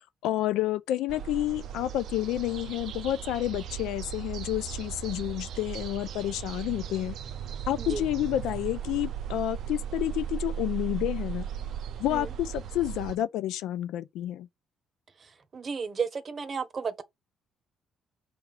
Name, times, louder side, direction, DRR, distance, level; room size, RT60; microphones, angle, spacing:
voice 1, 0.2-7.2 7.7-11.5 12.0-14.5, left 13 dB, 80° left, 0.3 m, -30 dB
sound 1, 1.1-13.2, right 9 dB, 70° right, 0.4 m, -37 dB
voice 2, 15.5-17.0, right 5 dB, 45° right, 0.7 m, -33 dB
4.7 x 2.3 x 4.8 m
supercardioid pair, 65°, 0 cm